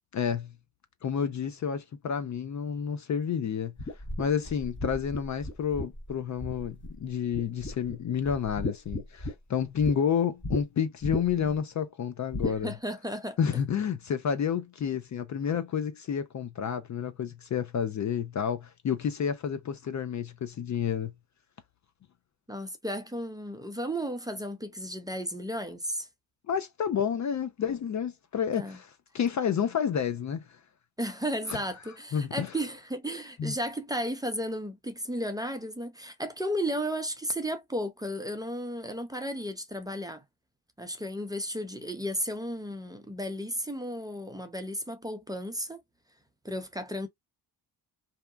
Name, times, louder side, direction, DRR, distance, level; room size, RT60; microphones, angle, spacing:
voice 1, 0.1-0.5 1.0-3.7 4.2-12.7 13.4-21.1 26.5-30.4 31.5-31.6 32.1-32.5 33.4-33.5, left 7 dB, 45° left, 0.5 m, -30 dB
sound 1, 3.8-7.0 7.3-7.9 8.2-9.9 10.4-10.6 11.0-11.5 12.3-12.6, left 2 dB, 30° left, 1.0 m, -34 dB
voice 2, 12.4-13.4 22.5-26.1 28.6-28.8 31.0-40.2 40.8-45.8 46.4-47.1, equal, 10° right, 0.6 m, -34 dB
2.8 x 2.2 x 2.2 m
cardioid pair, 80°, 42 cm